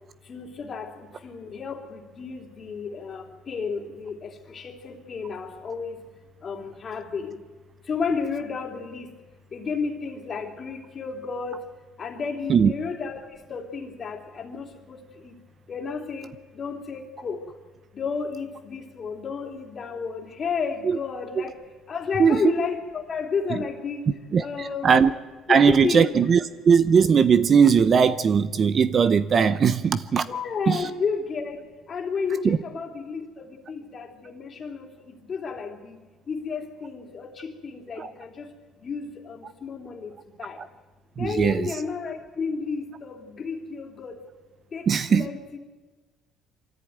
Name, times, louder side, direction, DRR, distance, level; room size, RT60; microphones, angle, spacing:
voice 1, 0.3-0.9 1.2-5.9 6.4-7.3 7.9-9.1 9.5-11.6 12.0-13.2 13.5-15.0 15.2-15.3 15.7-16.3 16.6-17.4 18.0-21.5 21.9-24.0 24.4-25.1 25.7-26.1 30.3-34.9 35.3-36.0 36.3-38.4 38.8-40.1 40.4-40.6 41.2-44.2 44.7-44.8 45.1-45.6, left 5 dB, 35° left, 2.9 m, -32 dB
voice 2, 22.2-22.5 23.5-23.6 24.3-25.1 25.5-30.3 30.7-30.9 32.4-32.6 38.0-38.1 40.6-40.7 41.2-41.7 44.9-45.3, right 6 dB, 35° right, 0.7 m, -19 dB
24.5 x 14.5 x 9.3 m
cardioid pair, 135°, 0 cm